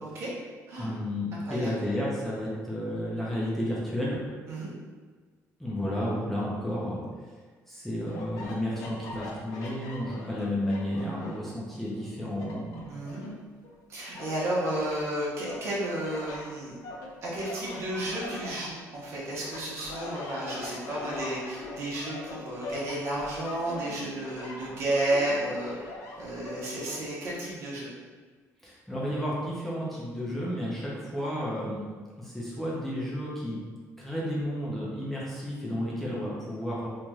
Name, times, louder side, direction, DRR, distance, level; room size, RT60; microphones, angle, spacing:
voice 1, 0.0-0.3 0.7-0.9 1.4-1.8 4.5-4.7 12.9-13.2 13.9-16.8 17.2-25.9 26.2-27.9, right 1 dB, 55° right, -6 dB, 0.9 m, -32 dB
voice 2, 0.8-4.2 5.6-7.4 7.7-12.9 28.6-31.8 32.2-33.6 34.0-36.9, equal, 5° left, -7 dB, 0.5 m, -32 dB
sound 1, 8.1-11.5 11.9-13.7 14.1-15.0 15.4-19.1 19.4-27.0, left 2 dB, 80° left, 0.5 m, -41 dB
3.1 x 2.6 x 2.3 m, 1.5 s
cardioid pair, 130°, 6 cm